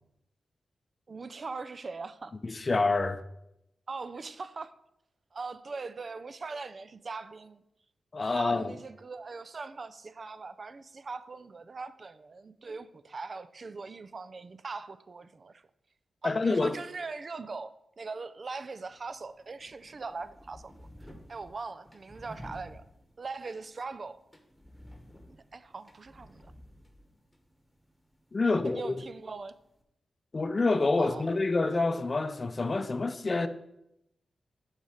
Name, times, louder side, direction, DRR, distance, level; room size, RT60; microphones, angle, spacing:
voice 1, 1.1-2.3 3.9-4.7 5.3-7.6 8.2-15.6 16.2-22.8 23.2-24.2 25.5-26.5 28.6-29.6 31.0-31.3, right 4 dB, 55° right, 0.4 m, -41 dB
voice 2, 2.4-3.2 8.1-8.7 16.2-16.8 28.3-29.0 30.3-33.5, left 3 dB, 45° left, 0.5 m, -27 dB
sound 1, 18.7-29.8, equal, 10° left, 1.3 m, -54 dB
7.1 x 4.0 x 5.0 m
cardioid pair, 50°, 0 cm